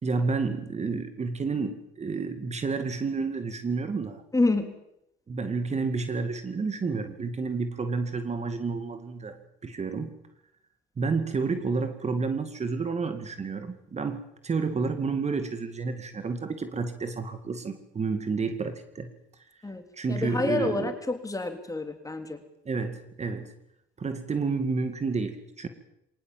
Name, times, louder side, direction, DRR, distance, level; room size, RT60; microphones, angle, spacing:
voice 1, 0.0-4.2 5.3-10.1 11.0-19.1 19.9-20.9 22.7-23.5 24.0-25.7, right 4 dB, 35° right, 9 dB, 2.2 m, -30 dB
voice 2, 4.3-4.7 19.6-19.8 20.1-22.4, left 2 dB, 15° left, 6 dB, 3.6 m, -28 dB
23.0 x 18.5 x 7.6 m, 0.82 s
supercardioid pair, 75°, 20 cm